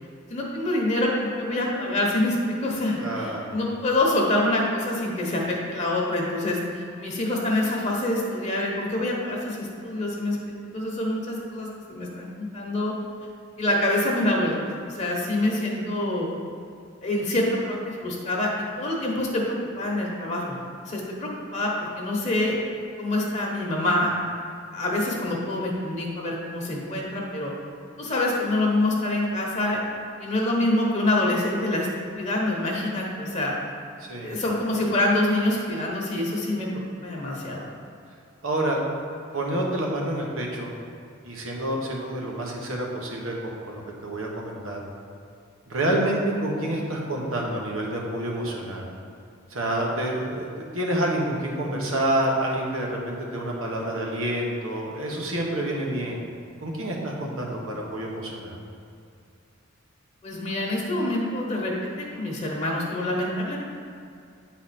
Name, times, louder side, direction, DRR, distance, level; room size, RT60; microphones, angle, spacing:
voice 1, 0.3-10.4 10.6-12.9 13.6-14.5 14.9-16.3 17.0-18.5 18.8-20.4 20.8-21.7 22.0-22.6 23.0-24.1 24.7-27.5 28.0-29.8 30.2-31.9 32.1-33.5 34.2-37.7 60.2-63.6, left 1 dB, 35° left, -2 dB, 0.9 m, -26 dB
voice 2, 3.0-3.5 34.0-34.4 38.4-38.8 39.3-40.7 41.2-44.8 45.7-48.9 49.5-50.5 50.7-56.2 56.6-58.5, right 1 dB, 90° right, -1 dB, 1.2 m, -28 dB
8.8 x 4.1 x 4.2 m, 2.4 s
head